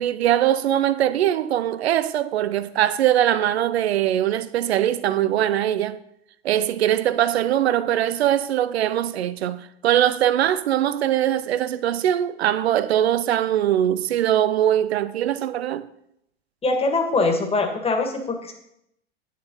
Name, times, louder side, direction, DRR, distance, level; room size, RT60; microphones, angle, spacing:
voice 1, 0.0-6.0 6.4-15.9, right 11 dB, 85° right, 0.6 m, -21 dB
voice 2, 16.6-18.5, left 3 dB, 20° left, 1.8 m, -22 dB
8.9 x 6.5 x 5.4 m
hypercardioid pair, 105°, 31 cm